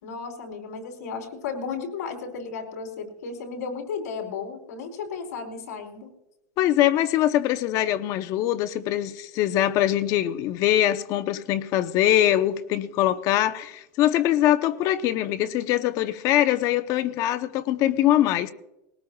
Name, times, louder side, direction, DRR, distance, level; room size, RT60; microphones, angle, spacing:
voice 1, 0.0-6.1, left 5 dB, 75° left, 4.3 m, -34 dB
voice 2, 6.6-18.5, left 12 dB, 40° left, 0.8 m, -23 dB
21.0 x 18.5 x 2.4 m
supercardioid pair, 150°, 9 cm